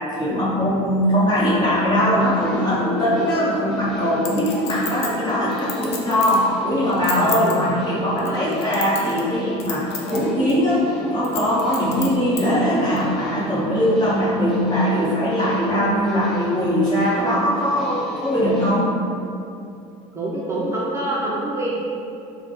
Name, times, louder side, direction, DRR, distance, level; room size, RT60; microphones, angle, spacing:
voice 1, 0.0-18.9, equal, 30° left, -8 dB, 1.1 m, -21 dB
sound 1, 1.9-18.7, equal, 5° left, 0.8 m, -37 dB
Chink clink, 4.2-6.4 6.9-7.5 8.2-9.3 9.6-10.2 10.5-10.6 11.2-12.4 13.0-13.1, left 6 dB, 50° left, 0.5 m, -30 dB
voice 2, 7.2-7.7 8.2-8.6 20.1-21.7, right 1 dB, 20° right, -5 dB, 0.4 m, -26 dB
3.4 x 2.1 x 4.1 m, 2.7 s
cardioid pair, 125°, 14 cm